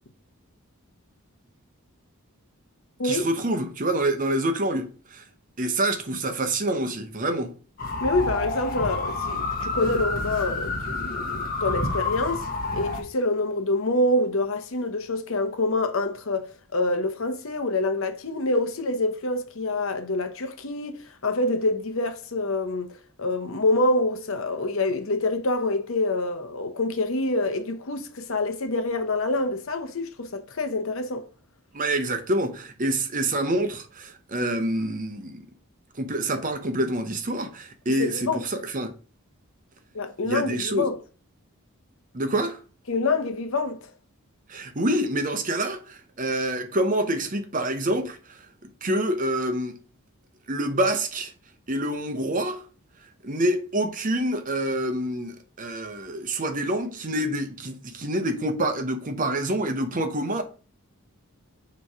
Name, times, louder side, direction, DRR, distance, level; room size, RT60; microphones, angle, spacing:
voice 1, 3.0-5.2 5.6-7.5 31.7-35.5 36.0-38.9 40.3-40.9 42.1-42.6 44.5-48.4 48.8-49.8 50.5-51.3 51.7-52.6 53.2-60.4, right 1 dB, 35° right, 0.8 m, -27 dB
sound 1, 7.8-13.0, left 3 dB, 40° left, 1.1 m, -29 dB
voice 2, 8.0-12.5 12.7-31.2 37.9-38.4 39.9-41.0 42.9-43.8, left 2 dB, 65° left, 0.8 m, -26 dB
6.8 x 3.1 x 4.8 m
head